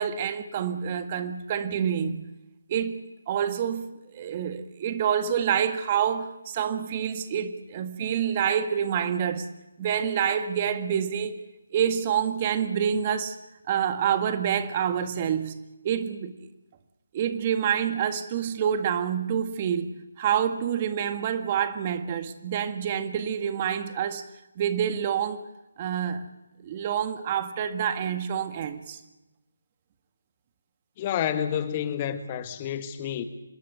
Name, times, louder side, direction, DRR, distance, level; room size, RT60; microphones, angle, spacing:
voice 1, 0.0-2.2 2.7-3.9 4.1-9.5 9.8-11.4 11.7-13.4 13.7-15.6 15.8-16.5 17.1-19.9 20.2-24.2 24.6-25.4 25.8-26.2 26.6-29.0, right 8 dB, 30° right, 1.7 m, -27 dB
voice 2, 31.0-33.2, left 9 dB, 30° left, 1.6 m, -29 dB
26.0 x 20.0 x 7.0 m
figure-of-eight pair, 150°, 0 cm